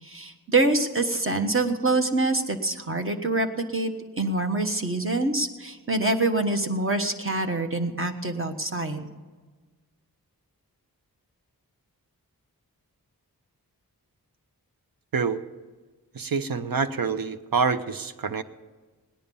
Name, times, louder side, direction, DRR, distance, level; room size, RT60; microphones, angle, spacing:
voice 1, 0.0-9.1, right 2 dB, 35° right, 5 dB, 1.3 m, -25 dB
voice 2, 16.1-18.4, right 5 dB, 65° right, 10 dB, 0.8 m, -26 dB
19.0 x 10.0 x 5.4 m, 1.4 s
wide cardioid pair, 80°, 37 cm